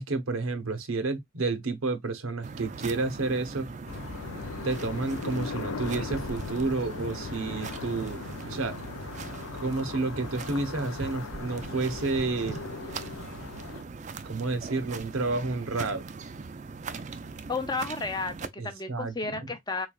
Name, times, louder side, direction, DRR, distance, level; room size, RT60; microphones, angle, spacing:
voice 1, 0.0-3.7 4.6-8.8 9.6-12.6 14.2-16.1 18.6-19.5, right 3 dB, 85° right, 0.9 m, -30 dB
sound 1, 2.4-18.5, right 4 dB, 35° right, 0.4 m, -40 dB
sound 2, 3.9-13.8, left 5 dB, 80° left, 0.4 m, -39 dB
voice 2, 17.5-19.9, left 3 dB, 20° left, 0.5 m, -32 dB
3.9 x 3.2 x 2.3 m
head